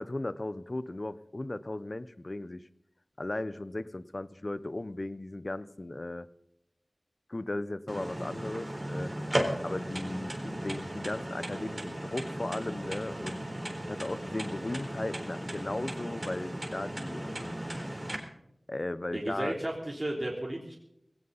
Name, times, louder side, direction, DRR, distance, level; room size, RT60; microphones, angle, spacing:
voice 1, 0.0-2.6 3.2-6.3 7.3-9.1 9.6-13.4 13.9-17.6 18.7-19.5, left 2 dB, 45° left, 15 dB, 0.9 m, -36 dB
sound 1, 7.9-18.2, right 1 dB, 25° right, 3.8 m, -36 dB
voice 2, 19.1-20.7, right 1 dB, 40° right, -2 dB, 3.4 m, -33 dB
18.5 x 17.5 x 4.1 m, 0.79 s
wide cardioid pair, 50°, 0 cm